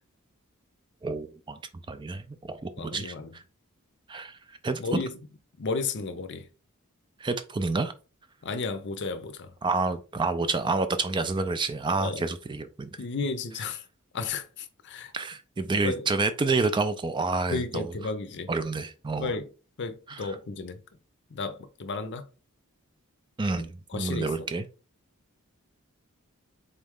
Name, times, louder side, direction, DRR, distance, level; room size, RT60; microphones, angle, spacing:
voice 1, 1.0-1.6 1.9-3.4 4.1-5.0 7.2-7.9 9.6-13.0 15.1-17.9 18.5-19.3 20.1-20.4 23.4-24.7, right 3 dB, 20° right, 0.4 m, -29 dB
voice 2, 2.8-3.3 4.8-5.2 5.6-6.5 8.4-9.5 12.0-12.2 13.0-13.8 14.1-15.1 15.8-16.1 17.5-18.5 19.2-19.5 19.8-20.8 21.3-22.3 23.9-24.5, left 4 dB, 55° left, 0.6 m, -33 dB
3.9 x 3.2 x 3.6 m
head